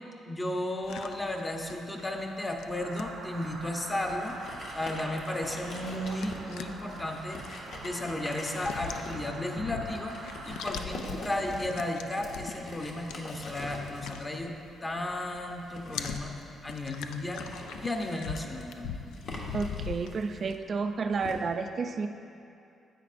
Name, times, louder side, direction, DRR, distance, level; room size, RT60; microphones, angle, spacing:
voice 1, 0.3-4.4 4.7-14.5 14.8-16.3 16.6-19.0, left 1 dB, 20° left, 2 dB, 0.8 m, -34 dB
sound 1, 0.8-15.1 15.4-20.6, left 7 dB, 90° left, 0.3 m, -43 dB
sound 2, 2.7-10.7, right 3 dB, 85° right, 0.9 m, -45 dB
sound 3, 3.2-21.3, left 2 dB, 70° left, 1.2 m, -44 dB
voice 2, 19.5-22.1, right 4 dB, 45° right, 6 dB, 0.3 m, -31 dB
10.0 x 8.2 x 2.5 m, 2.6 s
cardioid pair, 90°, 0 cm